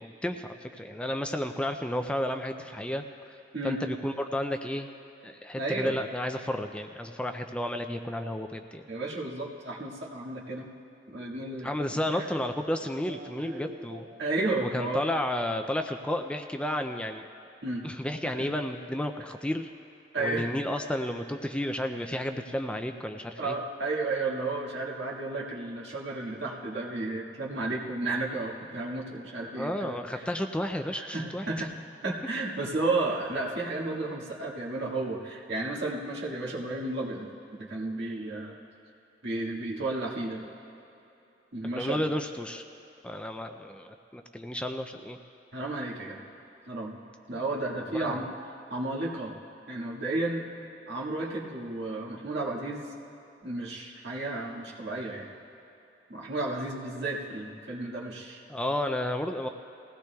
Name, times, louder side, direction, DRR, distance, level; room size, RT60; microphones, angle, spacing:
voice 1, 0.0-3.4 3.6-4.9 5.2-8.8 11.6-14.1 14.6-17.3 17.8-19.7 20.2-23.5 27.7-27.8 29.5-31.7 41.6-42.6 43.0-45.2 47.9-48.2 58.5-59.5, left 1 dB, 5° left, 6 dB, 0.4 m, -32 dB
voice 2, 5.5-6.0 8.9-10.7 11.1-12.3 12.8-15.0 17.6-17.8 18.2-18.5 20.1-20.5 23.4-30.3 31.0-31.7 32.0-37.3 37.6-38.5 39.2-40.5 41.5-42.0 45.5-46.2 46.7-47.0 47.3-48.3 48.7-49.3 49.7-50.4 50.9-52.8 53.4-55.3 56.1-58.4, right 2 dB, 70° right, -4 dB, 1.8 m, -33 dB
21.0 x 16.5 x 2.3 m, 2.9 s
head